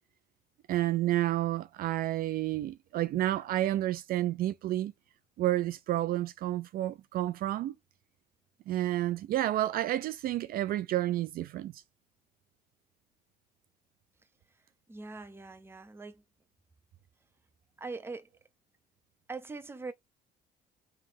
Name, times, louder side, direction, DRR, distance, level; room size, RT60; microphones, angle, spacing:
voice 1, 0.7-4.9 5.4-7.8 8.7-11.8, right 14 dB, 60° right, 0.4 m, -30 dB
voice 2, 14.9-16.2 17.8-18.3 19.3-19.9, right 3 dB, 15° right, 0.6 m, -42 dB
3.3 x 3.1 x 3.4 m
cardioid pair, 110°, 17 cm